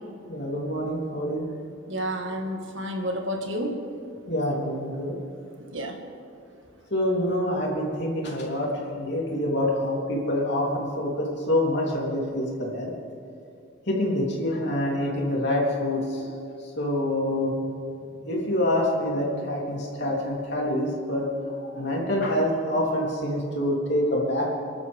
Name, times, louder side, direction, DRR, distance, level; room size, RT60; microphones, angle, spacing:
voice 1, 0.3-1.5 4.3-5.2 6.9-8.7 9.0-12.9 13.9-16.3 16.6-21.2 21.6-24.5, left 1 dB, 55° left, -3 dB, 3.5 m, -26 dB
voice 2, 1.9-3.8 5.7-6.0, equal, 75° right, 3 dB, 1.9 m, -30 dB
28.5 x 12.0 x 3.6 m, 2.4 s
head